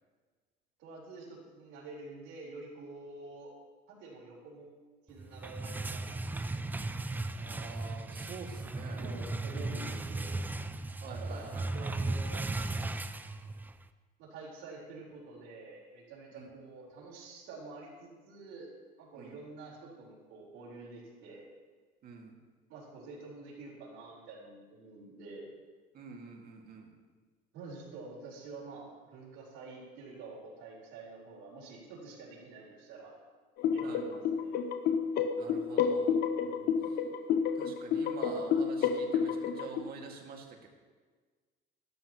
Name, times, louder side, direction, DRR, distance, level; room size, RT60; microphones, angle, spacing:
voice 1, 0.8-3.5 3.9-4.7 5.1-6.5 8.9-10.4 11.1-12.5 14.2-18.7 19.0-21.4 22.7-25.5 27.5-33.2 33.7-34.6 36.4-37.0, right 3 dB, 75° right, -3 dB, 4.2 m, -48 dB
sound 1, 5.2-13.8, right 2 dB, 10° right, 0.4 m, -36 dB
voice 2, 7.3-9.0 11.0-11.9 16.3-16.5 19.2-19.4 22.0-22.3 25.9-26.9 33.8-34.0 35.4-36.2 37.6-40.7, right 5 dB, 50° right, 1 dB, 2.1 m, -47 dB
sound 2, 33.6-39.8, left 6 dB, 55° left, 0.8 m, -30 dB
13.0 x 13.0 x 3.0 m, 1.4 s
cardioid pair, 120°, 19 cm